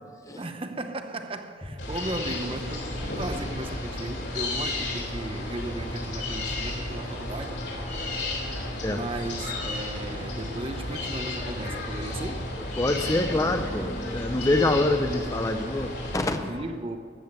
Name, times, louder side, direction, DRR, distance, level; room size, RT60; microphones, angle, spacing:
voice 1, 0.4-7.6 8.9-12.5 16.4-17.0, right 2 dB, 30° right, 0.8 m, -36 dB
sound 1, 1.8-16.3, left 1 dB, 80° left, 3.6 m, -33 dB
voice 2, 12.8-16.5, left 2 dB, 15° left, 0.5 m, -26 dB
14.5 x 7.8 x 9.6 m
head